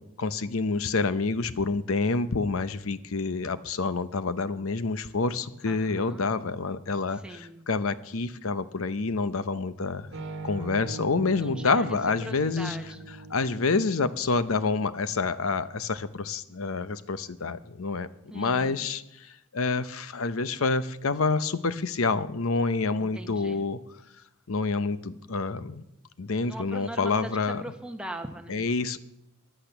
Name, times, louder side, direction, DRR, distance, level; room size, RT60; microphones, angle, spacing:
voice 1, 0.0-10.1 10.4-12.8 13.3-18.1 18.3-23.8 24.5-25.8 26.2-27.6 28.5-29.0, left 4 dB, 70° left, 14 dB, 0.8 m, -28 dB
voice 2, 5.7-6.3 7.1-7.6 11.4-13.1 18.3-18.9 23.0-23.7 26.4-27.3 27.6-28.6, right 1 dB, 5° right, 4 dB, 1.1 m, -40 dB
sound 1, 10.1-13.9, right 3 dB, 55° right, 1.4 m, -40 dB
15.0 x 10.0 x 6.8 m, 0.86 s
head